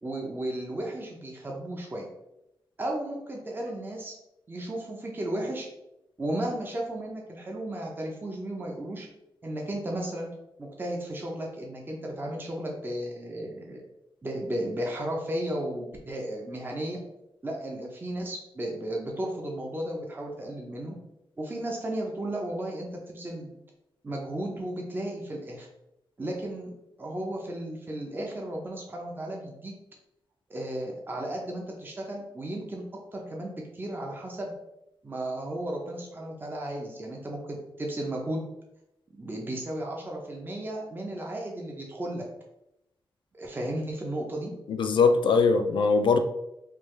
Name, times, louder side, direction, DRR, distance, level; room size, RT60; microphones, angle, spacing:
voice 1, 0.0-2.1 2.8-4.2 4.5-5.7 6.2-9.1 9.4-10.3 10.6-13.8 14.2-17.0 17.4-21.0 21.4-23.5 24.0-25.7 26.2-26.7 27.0-29.7 30.5-32.8 33.1-34.5 35.0-38.4 39.2-42.2 43.3-44.5, right 1 dB, 25° right, -1 dB, 0.6 m, -34 dB
voice 2, 44.7-46.2, left 4 dB, 70° left, 8 dB, 0.4 m, -21 dB
3.3 x 2.3 x 3.2 m, 0.86 s
cardioid pair, 95°, 9 cm